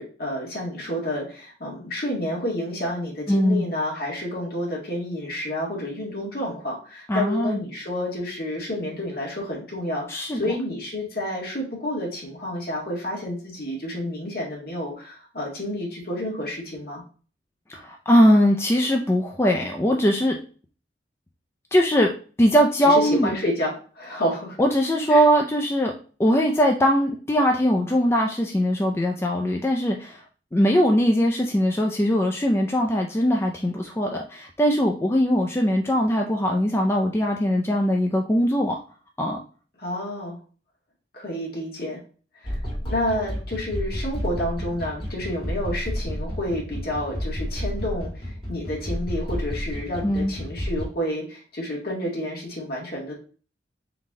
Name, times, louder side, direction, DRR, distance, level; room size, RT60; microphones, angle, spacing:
voice 1, 0.0-17.0 22.8-24.6 25.1-25.2 39.8-40.4 41.1-42.0 42.4-42.6 42.8-53.1, left 1 dB, 60° left, -2 dB, 1.8 m, -30 dB
voice 2, 3.3-3.6 7.1-7.6 10.1-10.4 17.7-20.4 21.7-22.1 22.4-23.3 24.6-25.9 26.2-30.2 30.5-38.8 39.2-39.4 50.0-50.3, equal, 15° left, 1 dB, 0.4 m, -21 dB
sound 1, 42.4-50.8, equal, 30° left, 1.8 m, -31 dB
3.9 x 3.1 x 3.7 m, 0.39 s
head